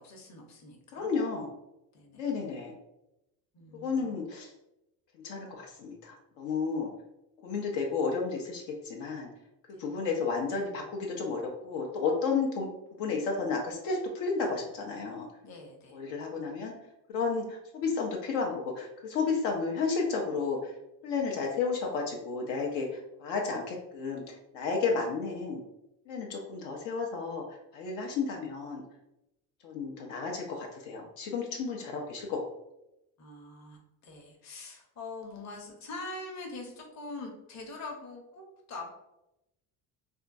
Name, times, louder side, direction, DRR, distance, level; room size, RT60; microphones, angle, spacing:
voice 1, 0.0-1.1 1.9-2.2 3.5-4.1 9.7-9.8 15.4-16.0 33.2-38.9, left 2 dB, 40° left, 1 dB, 0.9 m, -43 dB
voice 2, 0.9-1.5 2.1-2.7 3.8-4.5 5.2-6.9 7.4-9.3 9.8-12.7 13.0-15.3 15.9-16.7 17.1-20.7 21.0-25.6 26.1-27.4 27.7-28.8 29.6-32.4, left 4 dB, 75° left, 0 dB, 0.7 m, -32 dB
3.5 x 2.2 x 2.5 m, 0.89 s
supercardioid pair, 90°, 44 cm